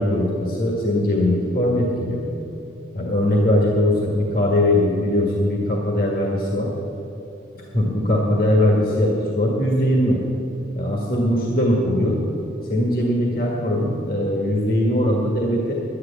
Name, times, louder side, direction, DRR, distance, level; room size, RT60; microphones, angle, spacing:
voice 1, 0.0-2.3 2.9-6.7 7.6-10.2 10.8-12.2 12.7-15.7, left 1 dB, 50° left, -1 dB, 1.7 m, -20 dB
11.5 x 9.6 x 8.2 m, 2.9 s
head